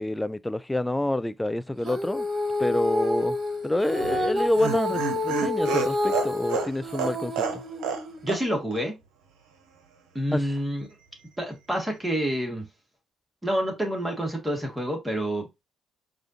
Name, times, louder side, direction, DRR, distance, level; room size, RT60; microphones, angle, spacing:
voice 1, 0.0-2.3 2.6-3.4 3.6-7.6 10.3-10.5, left 1 dB, 10° left, 0.3 m, -27 dB
Female singing, 1.8-8.3, left 2 dB, 50° right, 1.3 m, -29 dB
Laughter, 4.0-8.0 8.3-8.4 8.7-8.8, right 6 dB, 80° right, 0.8 m, -30 dB
voice 2, 8.2-9.0 10.1-10.9 11.4-12.7 13.4-15.6, equal, 15° right, 1.7 m, -28 dB
4.8 x 2.5 x 2.7 m
hypercardioid pair, 55°, 0 cm